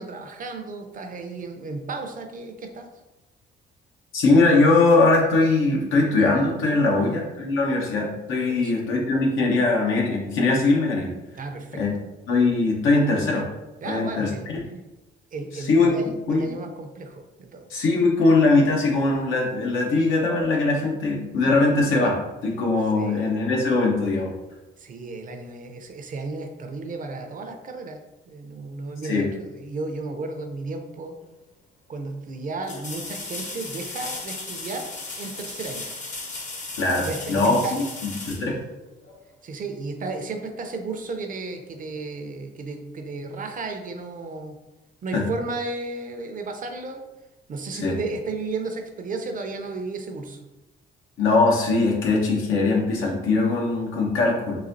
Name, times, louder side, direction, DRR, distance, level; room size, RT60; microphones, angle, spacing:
voice 1, 0.0-2.9 6.8-7.1 8.5-8.8 11.3-11.8 13.8-14.5 15.3-17.8 23.0-23.2 24.8-28.0 28.3-31.2 31.9-34.9 35.2-35.9 37.0-37.8 39.4-44.6 45.0-47.0 47.5-50.4, right 3 dB, 45° right, 5 dB, 0.6 m, -34 dB
voice 2, 4.1-11.1 11.7-11.9 12.3-13.5 13.8-14.6 15.5-16.0 16.3-16.6 17.7-22.2 22.4-24.3 29.0-29.3 36.8-37.6 38.0-38.6 45.1-45.2 47.8-48.0 51.2-54.6, left 3 dB, 85° left, -1 dB, 1.0 m, -21 dB
sound 1, 31.3-31.4 32.6-39.2 42.1-42.2, left 3 dB, 40° left, 0.7 m, -36 dB
4.0 x 2.7 x 2.6 m, 1.0 s
cardioid pair, 90°, 20 cm